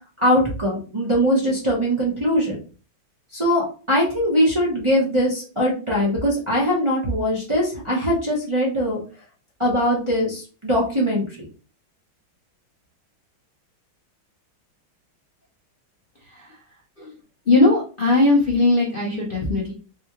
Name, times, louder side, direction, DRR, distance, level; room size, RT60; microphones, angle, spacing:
voice 1, 0.2-2.6 3.3-9.0 9.6-11.5, equal, 25° right, -5 dB, 0.6 m, -21 dB
voice 2, 17.5-19.7, left 2 dB, 60° left, -4 dB, 0.5 m, -18 dB
4.1 x 2.4 x 2.9 m, 0.36 s
omnidirectional pair, 2.2 m